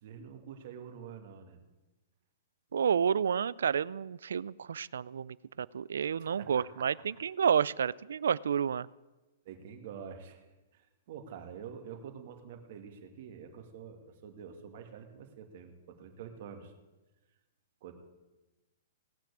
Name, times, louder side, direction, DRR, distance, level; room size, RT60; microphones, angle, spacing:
voice 1, 0.0-1.6 6.2-6.9 9.4-10.4 10.7-16.7 17.8-17.9, right 7 dB, 55° right, 4 dB, 2.4 m, -47 dB
voice 2, 2.7-8.9, right 7 dB, 90° right, 22 dB, 0.4 m, -30 dB
18.0 x 6.0 x 8.6 m, 1.1 s
hypercardioid pair, 150°, 0 cm